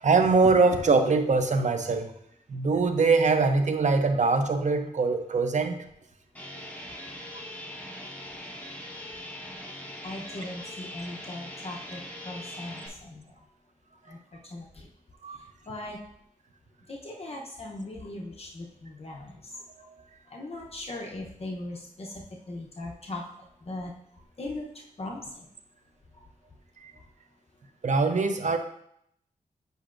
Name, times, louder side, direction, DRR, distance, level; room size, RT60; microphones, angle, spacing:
voice 1, 0.0-2.1 2.5-5.8 15.2-15.4 27.8-28.6, right 4 dB, 60° right, 6 dB, 0.7 m, -23 dB
sound 1, 6.3-12.9, left 1 dB, 10° left, 1.2 m, -41 dB
voice 2, 10.0-12.0 12.2-13.2 14.1-14.2 14.5-14.9 15.7-16.0 16.9-19.6 20.3-23.2 23.7-23.9 24.4-24.7 25.0-25.4, left 2 dB, 45° left, -1 dB, 0.8 m, -39 dB
7.9 x 5.5 x 2.5 m, 0.72 s
wide cardioid pair, 85°, 14 cm